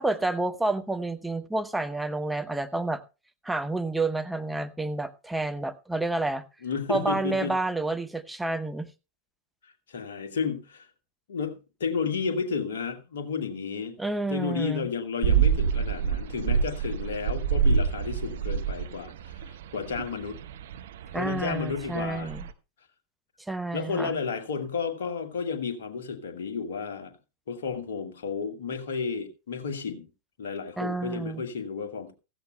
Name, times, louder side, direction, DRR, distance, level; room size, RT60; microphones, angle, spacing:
voice 1, 0.0-3.0 3.4-6.4 6.9-8.9 14.0-14.9 21.1-22.5 23.5-24.2 30.8-31.4, right 2 dB, 5° right, 0.8 m, -29 dB
voice 2, 6.6-7.6 9.6-10.9 11.3-14.0 14.3-20.4 21.1-22.3 23.7-27.2 27.5-30.1 30.4-32.1, left 5 dB, 60° left, 1.6 m, -32 dB
sound 1, 15.2-22.5, right 7 dB, 60° right, 0.8 m, -27 dB
15.5 x 14.0 x 2.2 m
figure-of-eight pair, 90°, 0 cm